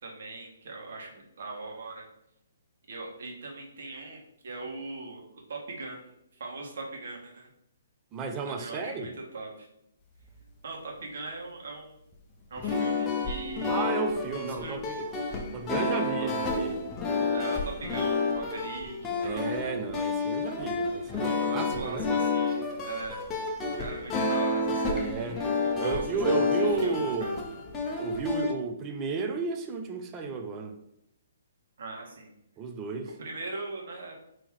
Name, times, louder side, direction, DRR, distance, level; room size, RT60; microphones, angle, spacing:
voice 1, 0.0-2.0 2.9-6.0 6.3-7.5 8.4-9.7 10.6-12.0 12.5-13.8 14.3-14.8 16.2-16.3 17.3-19.5 21.1-23.2 23.8-27.4 31.8-32.3 33.0-34.1, right 3 dB, 60° right, -1 dB, 1.4 m, -40 dB
voice 2, 8.1-9.1 13.7-15.0 15.5-16.7 19.2-22.1 24.9-25.4 25.8-27.4 28.0-30.7 32.6-33.1, right 4 dB, 25° right, 6 dB, 0.6 m, -33 dB
sound 1, 12.5-28.5, left 3 dB, 20° left, 0.8 m, -30 dB
3.6 x 3.0 x 4.6 m, 0.78 s
hypercardioid pair, 135°, 0 cm